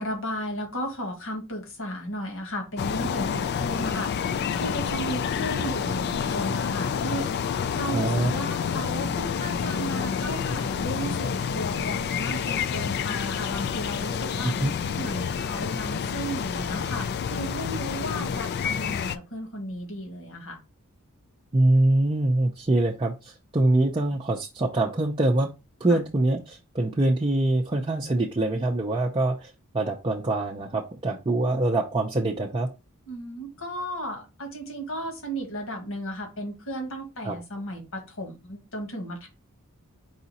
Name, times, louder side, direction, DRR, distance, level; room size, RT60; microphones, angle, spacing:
voice 1, 0.0-14.5 15.0-20.6 25.9-26.0 33.1-39.3, equal, 65° left, 2 dB, 1.6 m, -35 dB
sound 1, 2.8-19.2, left 7 dB, 50° left, 0.3 m, -28 dB
voice 2, 7.9-8.3 14.4-14.7 21.5-25.5 25.8-32.7 37.2-37.4, right 2 dB, 25° right, -1 dB, 0.5 m, -24 dB
4.9 x 2.7 x 4.1 m, 0.26 s
head